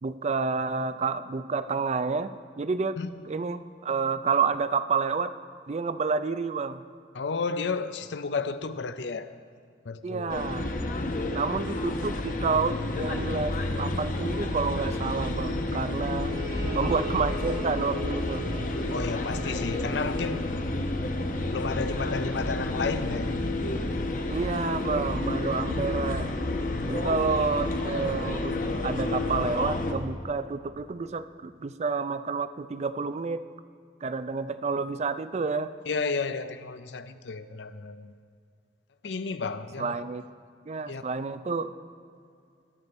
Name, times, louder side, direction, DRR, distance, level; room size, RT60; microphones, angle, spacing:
voice 1, 0.0-3.0 3.3-5.3 5.7-6.8 10.0-10.7 11.3-16.3 16.7-18.4 24.3-26.3 26.9-33.4 34.0-35.7 39.8-40.2 40.7-41.7, right 4 dB, 40° right, 13 dB, 0.4 m, -29 dB
voice 2, 7.1-9.3 9.9-10.4 18.9-20.5 21.5-23.4 26.7-27.1 35.9-38.1 39.0-39.9 40.9-41.0, left 4 dB, 80° left, 12 dB, 0.6 m, -32 dB
sound 1, 10.3-29.9, left 2 dB, 50° left, 1.0 m, -30 dB
Bowed string instrument, 16.2-20.5, left 2 dB, 55° right, 1.7 m, -39 dB
20.0 x 6.9 x 4.2 m, 2.3 s
head